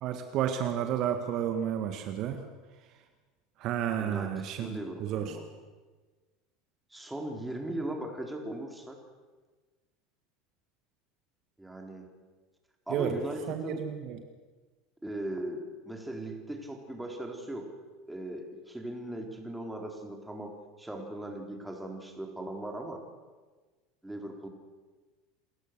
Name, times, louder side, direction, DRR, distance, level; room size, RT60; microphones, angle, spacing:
voice 1, 0.0-2.4 3.6-5.4 12.9-13.2 13.5-14.2, right 9 dB, 50° right, 6 dB, 1.7 m, -31 dB
voice 2, 4.0-5.5 6.9-9.0 11.6-12.1 12.9-13.9 15.0-17.7 18.1-23.0 24.0-24.5, right 1 dB, 5° right, 2 dB, 4.1 m, -38 dB
28.0 x 14.0 x 6.8 m, 1.3 s
hypercardioid pair, 80°, 0 cm